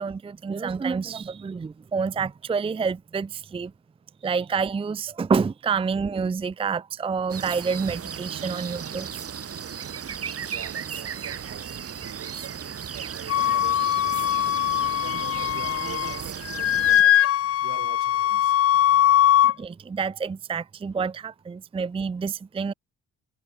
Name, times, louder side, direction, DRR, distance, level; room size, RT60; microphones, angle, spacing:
voice 1, 0.0-3.7 4.2-9.1 19.6-22.7, right 5 dB, 20° right, 0.5 m, -28 dB
sound 1, 7.3-17.0, right 7 dB, 50° right, 4.7 m, -35 dB
voice 2, 10.5-14.6 15.0-17.2 17.6-18.6, right 12 dB, 75° right, 5.7 m, -44 dB
Wind instrument woodwind instrument, 13.3-16.2 16.5-19.5, left 13 dB, 50° left, 0.5 m, -21 dB
cardioid pair, 90°, 30 cm